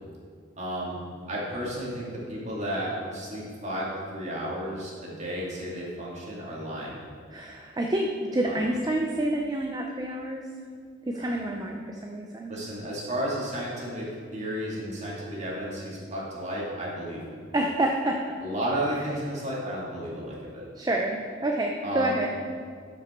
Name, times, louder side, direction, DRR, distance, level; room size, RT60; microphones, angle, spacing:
voice 1, 0.6-1.0 1.3-7.0 8.4-8.6 11.2-11.4 12.5-17.4 18.4-20.7 21.8-22.2, equal, 35° right, -5 dB, 2.4 m, -33 dB
voice 2, 7.3-10.4 11.1-12.5 17.5-18.2 20.8-22.3, right 1 dB, 20° right, 1 dB, 0.5 m, -28 dB
12.5 x 6.1 x 4.5 m, 2.1 s
head